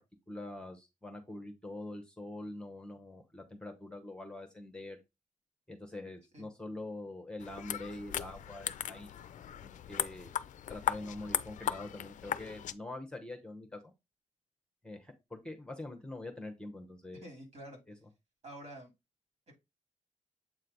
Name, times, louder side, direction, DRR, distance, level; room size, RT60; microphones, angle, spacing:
voice 1, 0.3-5.0 5.7-9.1 9.6-10.3 10.7-13.9 14.8-17.2, left 2 dB, 5° left, 4 dB, 0.9 m, -44 dB
sound 1, 7.4-12.7, left 10 dB, 80° left, 0.4 m, -37 dB
voice 2, 17.2-17.8 18.4-18.9, right 1 dB, 60° right, 2 dB, 2.7 m, -48 dB
7.7 x 3.2 x 3.9 m, 0.23 s
wide cardioid pair, 160°, 13 cm